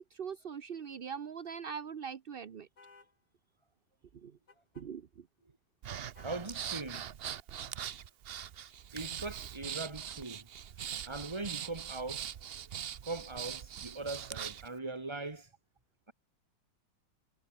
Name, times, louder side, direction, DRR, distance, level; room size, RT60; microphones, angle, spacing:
voice 1, 0.0-2.7 4.1-4.3 4.8-5.1, right 7 dB, 45° right, 0.7 m, -41 dB
sound 1, 2.8-3.1 4.5-4.9 5.9-6.5, left 4 dB, 55° left, 3.7 m, -59 dB
Breathing, 5.8-14.7, right 9 dB, 80° right, 0.5 m, -42 dB
voice 2, 6.2-7.1 8.9-10.5 11.0-15.5, right 3 dB, 15° right, 1.8 m, -41 dB
omnidirectional pair, 2.0 m